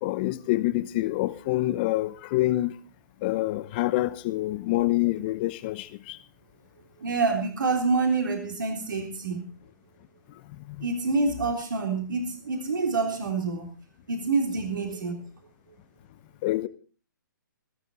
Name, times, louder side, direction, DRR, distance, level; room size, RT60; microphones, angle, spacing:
voice 1, 0.0-2.7 3.2-6.2 10.7-10.9 16.4-16.7, left 17 dB, 30° left, 0.8 m, -26 dB
voice 2, 7.0-9.5 10.8-13.7 14.1-15.2, right 4 dB, 70° right, 3.7 m, -27 dB
17.5 x 14.0 x 4.1 m
hypercardioid pair, 145°, 11 cm